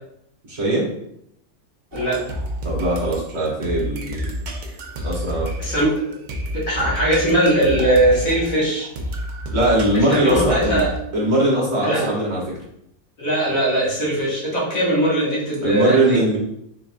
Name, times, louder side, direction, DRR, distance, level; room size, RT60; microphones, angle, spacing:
voice 1, 0.5-0.9 2.6-4.3 5.0-5.5 9.5-10.8 11.1-12.4 15.6-16.4, right 1 dB, 35° right, -5 dB, 1.6 m, -20 dB
voice 2, 1.9-2.2 5.6-6.0 6.5-8.9 9.9-10.9 11.8-12.1 13.2-16.2, right 1 dB, 70° left, -5 dB, 1.7 m, -20 dB
sound 1, 1.9-11.0, equal, 75° right, 0.4 m, -29 dB
4.5 x 3.5 x 2.3 m, 0.76 s
omnidirectional pair, 1.5 m